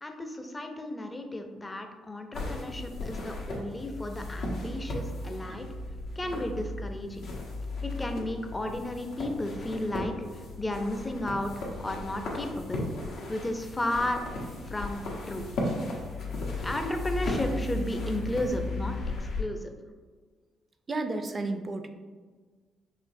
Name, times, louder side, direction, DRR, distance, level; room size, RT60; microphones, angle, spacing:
voice 1, 0.0-5.6 6.2-7.3 7.8-12.9 13.3-14.2 14.6-15.5 16.6-19.7, left 1 dB, 20° left, 5 dB, 0.5 m, -33 dB
sound 1, 2.3-19.4, left 2 dB, 80° left, 1.0 m, -35 dB
voice 2, 5.3-5.6 20.9-21.9, right 2 dB, 35° right, 7 dB, 0.4 m, -33 dB
5.1 x 3.1 x 2.7 m, 1.5 s
cardioid pair, 90°, 0 cm